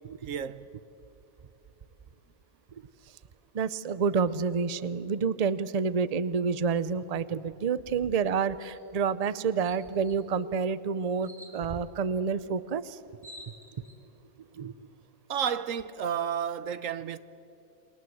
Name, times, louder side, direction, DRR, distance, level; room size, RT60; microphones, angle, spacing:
voice 1, 0.2-0.7 15.3-17.2, right 8 dB, 65° right, 1.1 m, -31 dB
voice 2, 3.5-13.0 14.6-14.7, right 5 dB, 40° right, 0.6 m, -28 dB
sound 1, 8.6-8.8 9.2-9.3 9.6-10.2 11.2-11.6 12.7-12.8 13.0-14.0, equal, 5° right, 3.7 m, -49 dB
28.5 x 23.0 x 7.9 m
omnidirectional pair, 1.5 m